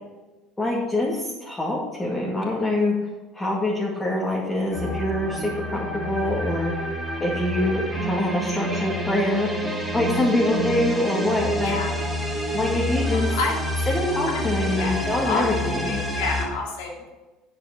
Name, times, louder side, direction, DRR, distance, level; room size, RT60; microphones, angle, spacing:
voice 1, 0.6-2.9 3.3-6.7 7.2-11.8 12.5-13.4 13.9-16.0, left 1 dB, 15° left, -4 dB, 2.3 m, -25 dB
sound 1, 4.7-16.5, equal, ahead, 3.1 m, -28 dB
voice 2, 11.6-12.0 13.1-13.6 14.3-14.4 14.7-15.4 15.8-17.1, left 4 dB, 65° left, 0 dB, 2.4 m, -29 dB
9.8 x 6.9 x 6.0 m, 1.2 s
figure-of-eight pair, 65°, 0 cm